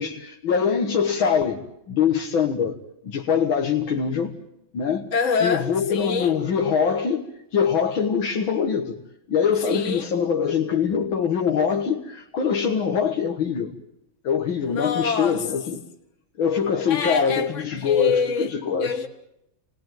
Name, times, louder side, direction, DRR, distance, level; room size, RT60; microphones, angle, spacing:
voice 1, 0.0-1.6 1.9-2.8 3.0-4.3 4.7-5.1 5.4-7.3 7.5-9.0 9.3-13.7 14.2-15.8 16.4-19.0, left 7 dB, 80° left, 2.4 m, -23 dB
voice 2, 5.1-6.4 9.6-10.1 14.7-15.5 16.9-18.5 18.8-19.1, left 5 dB, 40° left, 2.0 m, -26 dB
29.0 x 20.5 x 9.2 m
omnidirectional pair, 2.1 m